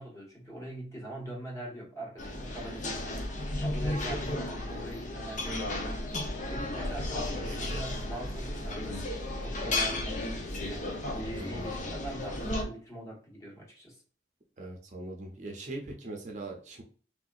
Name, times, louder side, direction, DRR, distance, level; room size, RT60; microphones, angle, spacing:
voice 1, 0.0-3.2 3.6-9.0 9.4-14.0, right 1 dB, 20° left, -3 dB, 1.4 m, -43 dB
sound 1, 2.2-12.6, left 1 dB, 45° left, 0.7 m, -34 dB
voice 2, 14.6-16.8, right 2 dB, 45° right, 1 dB, 0.7 m, -41 dB
3.4 x 2.7 x 2.4 m, 0.42 s
head